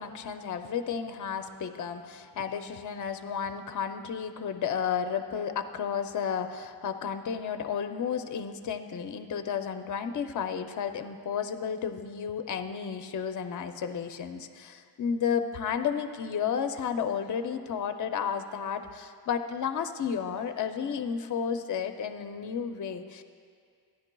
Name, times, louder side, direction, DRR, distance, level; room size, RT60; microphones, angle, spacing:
voice 1, 0.0-23.2, left 7 dB, 45° left, 8 dB, 0.4 m, -32 dB
15.0 x 10.5 x 2.2 m, 2.1 s
wide cardioid pair, 180°, 42 cm